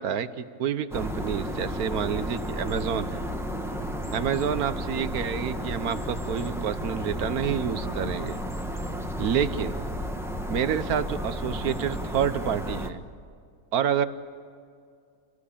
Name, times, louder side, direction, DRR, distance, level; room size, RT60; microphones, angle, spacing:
voice 1, 0.0-3.2 4.1-8.4 9.2-9.8 10.5-13.0 13.7-14.1, right 8 dB, 70° right, 12 dB, 1.4 m, -28 dB
sound 1, 0.9-12.9, equal, ahead, 1.2 m, -32 dB
28.5 x 18.5 x 8.6 m, 2.3 s
omnidirectional pair, 1.7 m